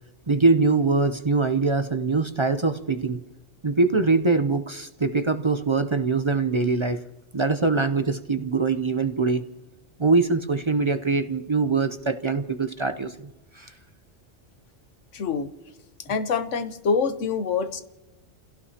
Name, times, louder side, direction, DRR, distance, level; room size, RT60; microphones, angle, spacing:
voice 1, 0.3-3.2 3.6-7.0 7.3-9.4 10.0-13.3 13.5-13.7, right 3 dB, 30° right, 8 dB, 0.5 m, -23 dB
voice 2, 15.1-15.5 16.1-17.8, left 5 dB, 80° left, 9 dB, 1.3 m, -25 dB
29.5 x 17.0 x 2.9 m, 1.1 s
omnidirectional pair, 1.2 m